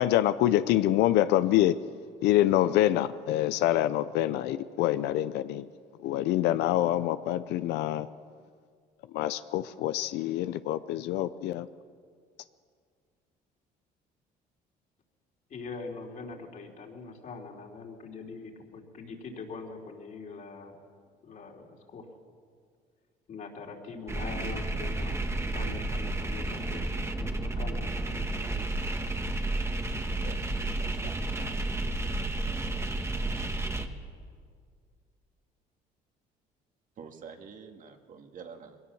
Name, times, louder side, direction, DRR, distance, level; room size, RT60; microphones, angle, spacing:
voice 1, 0.0-1.8 2.2-5.7 6.0-8.1 9.1-11.7, left 13 dB, 85° left, 13 dB, 0.6 m, -26 dB
voice 2, 15.5-20.8 21.2-22.0 23.3-27.9 28.2-28.7, left 4 dB, 50° left, 1 dB, 3.3 m, -43 dB
sound 1, 24.1-33.9, right 2 dB, 15° right, 1.4 m, -31 dB
voice 3, 30.2-32.1 37.0-38.8, right 6 dB, 50° right, 4 dB, 2.0 m, -48 dB
22.0 x 17.5 x 7.1 m, 2.1 s
cardioid pair, 110°, 17 cm